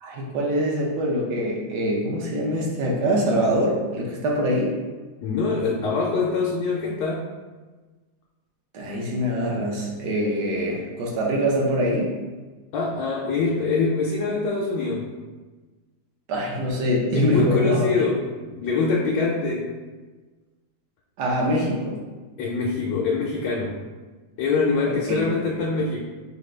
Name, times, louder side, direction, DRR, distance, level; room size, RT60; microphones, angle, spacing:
voice 1, 0.0-4.8 8.7-12.2 16.3-17.9 21.2-22.0 24.9-25.2 25.5-25.6, equal, 65° right, -2 dB, 1.3 m, -24 dB
voice 2, 5.2-7.2 12.7-15.1 17.1-19.7 22.4-23.8 24.4-26.0, left 4 dB, 75° left, -3 dB, 1.2 m, -24 dB
5.0 x 2.2 x 3.2 m, 1.3 s
omnidirectional pair, 2.0 m